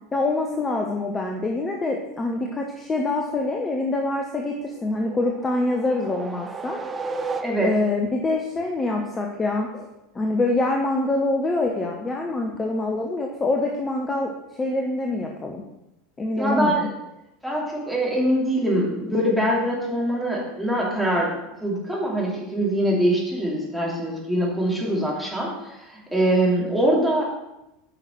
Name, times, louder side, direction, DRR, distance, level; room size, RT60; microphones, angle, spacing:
voice 1, 0.1-6.8 7.6-9.9 10.1-14.3 14.6-15.6 16.2-16.9, left 2 dB, 20° left, 2 dB, 0.9 m, -25 dB
sound 1, 4.7-8.0, right 4 dB, 20° right, 0.7 m, -34 dB
voice 2, 7.4-7.7 16.4-16.9 17.4-21.3 21.6-27.2, right 1 dB, ahead, -4 dB, 2.7 m, -23 dB
9.1 x 5.8 x 4.5 m, 0.92 s
figure-of-eight pair, 75°, 0 cm